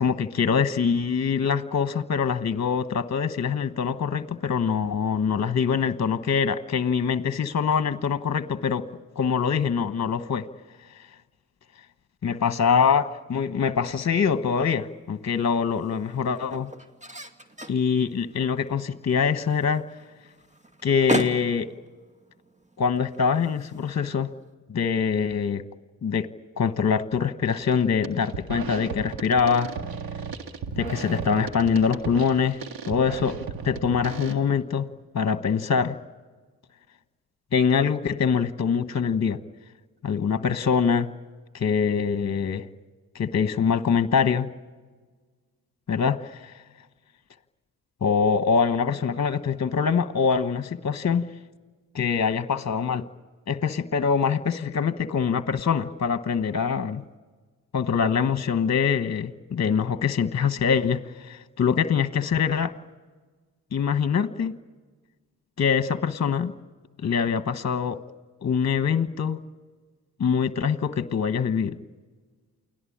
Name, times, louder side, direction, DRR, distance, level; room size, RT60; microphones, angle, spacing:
voice 1, 0.0-8.8 9.2-10.5 12.2-16.7 17.7-19.8 20.8-21.7 22.8-24.3 24.7-25.6 26.0-26.3 26.6-29.7 30.7-32.6 32.9-33.4 33.6-34.9 35.1-36.0 37.5-39.4 40.0-41.1 41.5-42.6 43.1-44.5 45.9-46.2 48.0-51.2 51.9-53.1 53.5-57.0 57.7-62.7 63.7-64.5 65.6-66.5 67.0-68.0 68.4-69.4 70.2-71.8, left 6 dB, 45° left, 12 dB, 1.3 m, -24 dB
sound 1, 14.2-24.5, right 1 dB, 20° right, 2.4 m, -38 dB
sound 2, 27.5-27.7 28.0-34.3, right 5 dB, 70° right, 1.9 m, -35 dB
29.0 x 19.0 x 8.7 m, 1.4 s
supercardioid pair, 45°, 38 cm